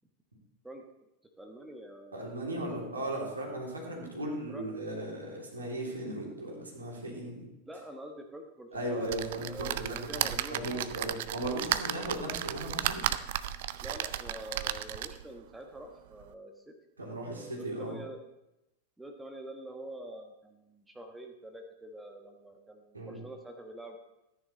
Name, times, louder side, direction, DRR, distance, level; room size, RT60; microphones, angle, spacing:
voice 1, 1.4-3.0 4.5-4.6 6.6-6.7 7.7-10.8 13.8-16.7 17.3-18.2 19.0-24.0, right 1 dB, 5° right, 4 dB, 1.2 m, -46 dB
voice 2, 2.1-7.4 8.7-13.0 17.0-18.0 22.9-23.2, right 1 dB, 75° right, -2 dB, 3.2 m, -37 dB
sound 1, 9.1-15.3 15.8-15.9 16.2-16.3, right 12 dB, 55° right, 0.5 m, -34 dB
14.0 x 9.9 x 4.1 m, 0.90 s
figure-of-eight pair, 90°, 0 cm